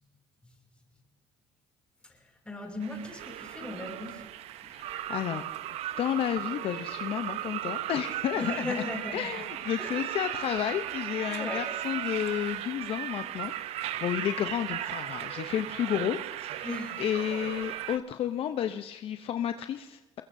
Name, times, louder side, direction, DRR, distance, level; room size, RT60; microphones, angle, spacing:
voice 1, 2.4-4.3 8.4-9.3 9.8-10.0 11.3-11.7 16.6-17.0, left 2 dB, 10° left, 1 dB, 5.4 m, -37 dB
sound 1, 2.8-18.0, right 12 dB, 70° right, 0.7 m, -36 dB
voice 2, 4.7-5.4 6.0-8.8 9.1-13.5 13.9-20.2, left 10 dB, 60° left, 8 dB, 0.7 m, -32 dB
22.0 x 22.0 x 2.7 m, 1.0 s
cardioid pair, 95°, 11 cm